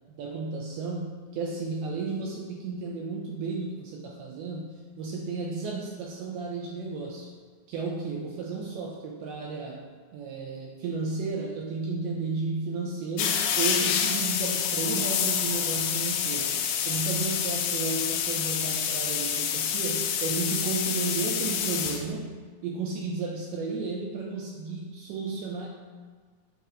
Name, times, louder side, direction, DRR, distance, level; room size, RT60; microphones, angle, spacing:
voice 1, 0.2-7.3 7.7-16.6 16.9-22.4 22.6-25.7, right 4 dB, 85° right, 0 dB, 2.2 m, -33 dB
sound 1, 13.2-22.0, left 8 dB, 85° left, 2.2 m, -28 dB
8.0 x 5.1 x 2.4 m, 1.5 s
omnidirectional pair, 4.8 m